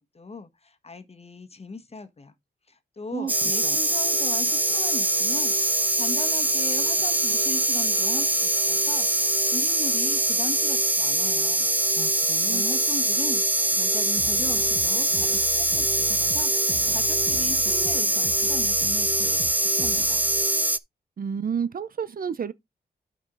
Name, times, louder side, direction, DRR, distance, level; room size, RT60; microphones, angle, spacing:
voice 1, 0.0-2.3 2.7-11.7 12.4-13.4 13.7-20.2, left 3 dB, 35° left, 1.4 m, -38 dB
sound 1, 3.3-20.8, right 2 dB, 10° right, 0.4 m, -23 dB
voice 2, 11.9-12.6 21.2-22.5, right 7 dB, 55° right, 0.6 m, -31 dB
sound 2, 14.2-20.4, right 3 dB, 25° right, 1.5 m, -40 dB
8.7 x 5.3 x 3.9 m
wide cardioid pair, 85°, 17 cm